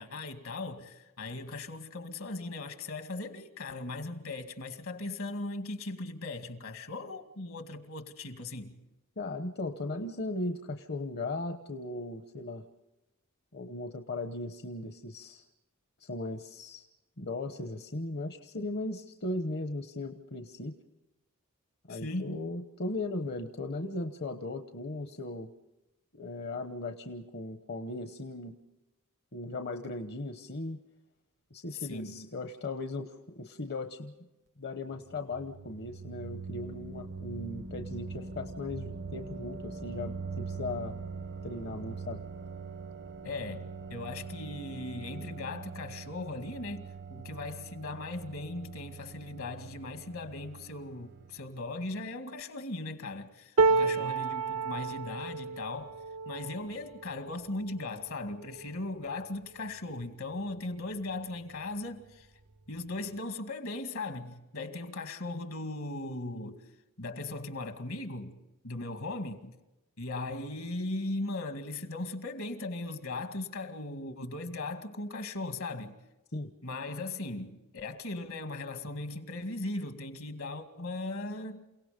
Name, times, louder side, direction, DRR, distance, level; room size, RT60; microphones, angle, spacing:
voice 1, 0.0-8.8 21.9-22.4 31.7-32.3 43.2-56.0 56.3-62.3 62.7-66.6 67.0-68.4 68.6-69.6 70.0-76.0 76.6-81.7, left 2 dB, 70° left, 2.2 m, -38 dB
voice 2, 9.2-12.6 13.5-15.4 16.0-16.8 17.2-20.8 21.9-25.5 26.1-28.6 29.3-30.8 31.5-34.1 34.6-41.0 41.4-42.2 53.8-54.1 76.3-76.5, left 2 dB, 50° left, 1.0 m, -37 dB
sound 1, 34.9-51.7, right 4 dB, 55° right, 0.7 m, -43 dB
sound 2, 53.6-59.7 60.3-60.5 60.8-61.6 62.5-62.6, right 4 dB, 85° right, 0.8 m, -32 dB
29.0 x 17.5 x 5.2 m
head